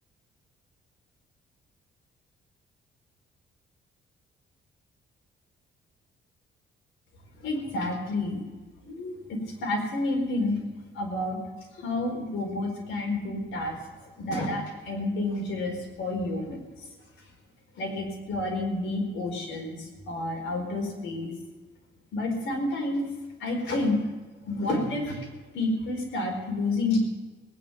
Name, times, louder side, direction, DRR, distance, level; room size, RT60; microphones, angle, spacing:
voice 1, 7.4-8.4 8.8-10.6 10.9-11.4 11.8-13.8 14.2-16.6 17.8-21.3 22.1-23.0 23.4-24.0 24.4-25.2 25.5-27.1, left 2 dB, 75° left, 2 dB, 4.4 m, -29 dB
19.0 x 9.8 x 7.0 m, 1.3 s
cardioid pair, 90°, 20 cm